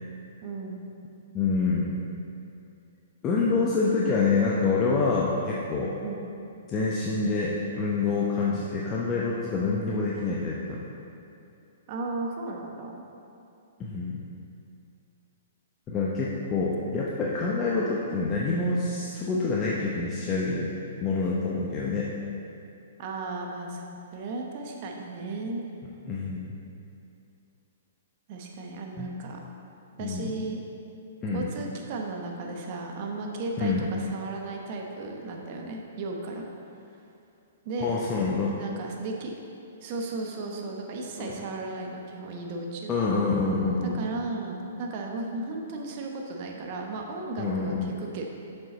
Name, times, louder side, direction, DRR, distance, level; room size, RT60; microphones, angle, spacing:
voice 1, 0.4-0.8 6.0-6.2 11.9-13.0 23.0-23.8 24.1-25.7 28.3-29.4 30.0-30.6 31.3-36.4 37.6-38.0 38.6-39.3 39.8-42.9 43.9-48.3, right 3 dB, 45° right, 1 dB, 1.0 m, -35 dB
voice 2, 1.3-2.0 3.2-5.9 6.7-10.8 13.8-14.2 15.9-20.7 21.0-22.1 26.1-26.5 29.0-29.1 30.0-30.3 31.2-31.5 33.6-33.9 37.8-38.6 41.2-41.4 42.9-44.0 47.4-47.9, left 4 dB, 25° left, -5 dB, 0.8 m, -27 dB
7.1 x 5.5 x 4.1 m, 2.7 s
figure-of-eight pair, 120°, 0 cm